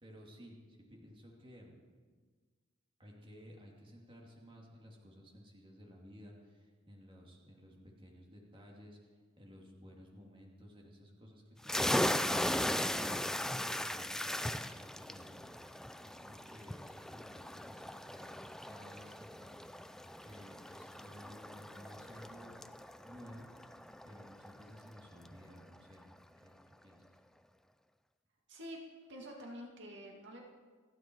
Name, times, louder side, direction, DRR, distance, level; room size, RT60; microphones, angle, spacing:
voice 1, 0.0-1.8 3.0-9.0 9.4-15.5 16.0-19.6 20.2-22.6 23.1-23.5 24.0-26.1 26.4-27.1, equal, 25° right, -1 dB, 2.7 m, -55 dB
sound 1, 11.6-25.0, left 1 dB, 5° left, 0.4 m, -38 dB
voice 2, 28.5-28.8 29.1-30.5, equal, 60° right, 0 dB, 2.2 m, -47 dB
29.0 x 9.7 x 4.6 m, 1.5 s
head